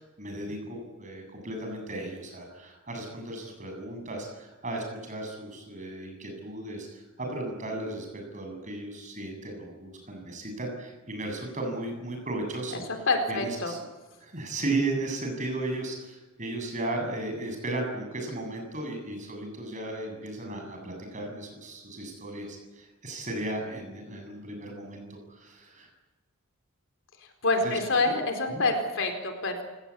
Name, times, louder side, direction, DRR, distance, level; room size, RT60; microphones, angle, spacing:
voice 1, 0.0-13.8 14.2-25.9 27.6-27.8 28.0-28.1 28.5-28.6, right 2 dB, 35° right, 3 dB, 7.6 m, -35 dB
voice 2, 13.1-13.7 27.4-29.6, left 3 dB, 60° left, 6 dB, 4.3 m, -26 dB
29.5 x 18.5 x 8.6 m, 1.2 s
head